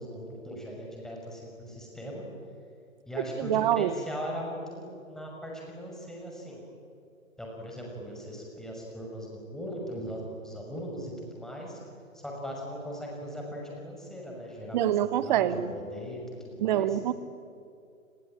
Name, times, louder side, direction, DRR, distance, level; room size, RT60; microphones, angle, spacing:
voice 1, 0.0-2.2 3.1-6.6 7.4-11.8 12.1-17.0, equal, ahead, 6.2 m, -39 dB
voice 2, 3.4-3.9 14.7-15.7 16.6-17.1, right 11 dB, 30° right, 1.3 m, -25 dB
29.5 x 21.5 x 9.1 m
figure-of-eight pair, 125°, 42 cm